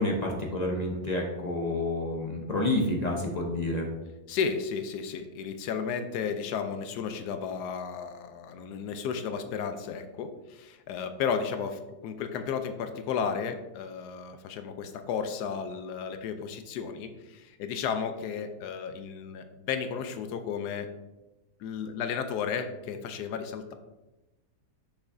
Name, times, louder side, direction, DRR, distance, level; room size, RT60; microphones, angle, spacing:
voice 1, 0.0-3.9, left 1 dB, 35° left, 0 dB, 0.7 m, -29 dB
voice 2, 4.3-20.9 21.6-23.7, left 6 dB, 80° left, 8 dB, 1.1 m, -33 dB
6.3 x 5.9 x 2.6 m, 1.0 s
omnidirectional pair, 1.7 m